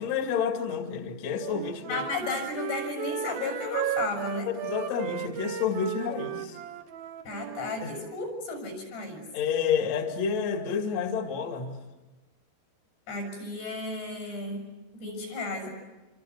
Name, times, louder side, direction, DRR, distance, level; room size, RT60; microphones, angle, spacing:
voice 1, 0.0-2.0 4.5-6.6 7.8-7.9 9.3-11.8, left 6 dB, 45° left, 4 dB, 2.9 m, -29 dB
Wind instrument woodwind instrument, 1.4-7.8, right 11 dB, 70° right, 2.7 m, -35 dB
voice 2, 1.8-4.5 7.2-9.2 13.1-15.7, left 3 dB, 80° left, 4 dB, 8.5 m, -34 dB
27.0 x 26.5 x 7.9 m, 1.2 s
omnidirectional pair, 4.9 m